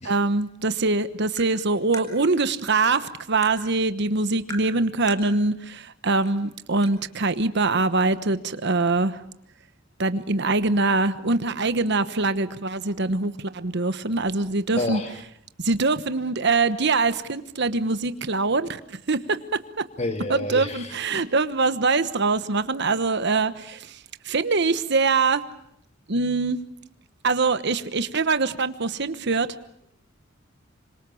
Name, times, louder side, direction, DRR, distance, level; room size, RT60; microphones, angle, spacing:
voice 1, 0.0-9.2 10.0-15.0 15.6-19.9 20.3-25.4 26.1-26.6 27.2-29.5, right 3 dB, 60° right, 12 dB, 1.2 m, -23 dB
Tap, 1.4-1.5 1.9-2.1 2.8-3.0 3.4-3.6 4.5-4.7 5.1-5.3 6.2-6.3 6.8-6.9, right 1 dB, 15° left, 4.4 m, -37 dB
voice 2, 14.8-15.1 20.0-20.7 21.1-21.2, left 2 dB, 35° left, 7 dB, 2.0 m, -28 dB
27.0 x 25.5 x 7.1 m, 0.73 s
head